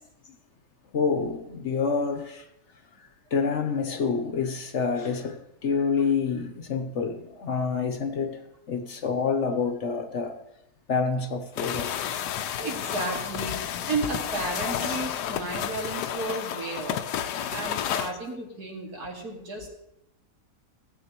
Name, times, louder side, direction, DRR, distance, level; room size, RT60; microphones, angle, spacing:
voice 1, 0.9-2.4 3.3-8.4 8.7-10.4 10.9-12.2, left 5 dB, 55° left, 1.0 m, -27 dB
sound 1, 11.6-18.1, left 10 dB, 90° left, 1.2 m, -31 dB
voice 2, 12.6-17.0 17.5-19.7, right 3 dB, 70° right, 2.5 m, -33 dB
16.5 x 8.2 x 3.0 m
omnidirectional pair, 1.7 m